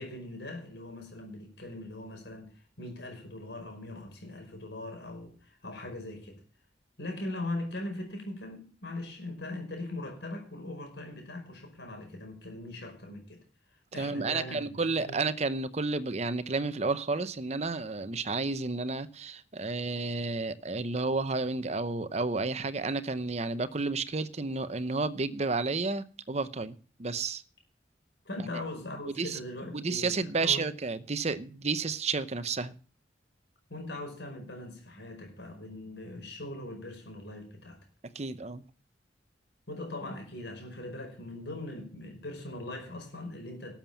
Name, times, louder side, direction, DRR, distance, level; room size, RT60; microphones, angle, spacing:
voice 1, 0.0-2.5 2.8-6.4 7.0-13.4 13.9-14.8 15.1-15.2 28.3-30.6 33.7-37.8 39.7-43.8, left 1 dB, 70° left, 5.3 m, -40 dB
voice 2, 14.0-27.4 29.0-29.4 29.7-32.7 38.1-38.6, right 3 dB, 35° right, 0.8 m, -31 dB
12.5 x 7.3 x 7.2 m
head